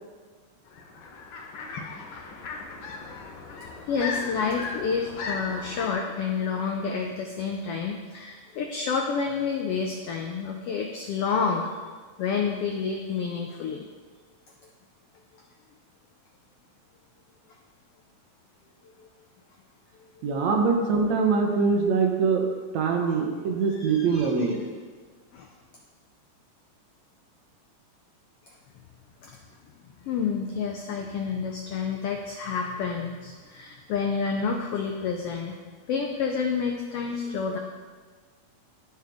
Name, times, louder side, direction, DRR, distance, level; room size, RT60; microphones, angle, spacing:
sound 1, 0.7-5.9, left 4 dB, 70° left, 1.1 m, -37 dB
voice 1, 3.9-11.7 12.2-13.8 19.0-19.1 20.2-20.3 23.7-24.6 25.3-25.5 29.2-29.4 30.0-35.6 35.9-37.6, left 5 dB, 90° left, 2 dB, 1.3 m, -29 dB
voice 2, 20.2-22.5 22.7-24.6, right 5 dB, 70° right, 2 dB, 2.1 m, -23 dB
13.0 x 4.5 x 3.5 m, 1.5 s
omnidirectional pair, 3.4 m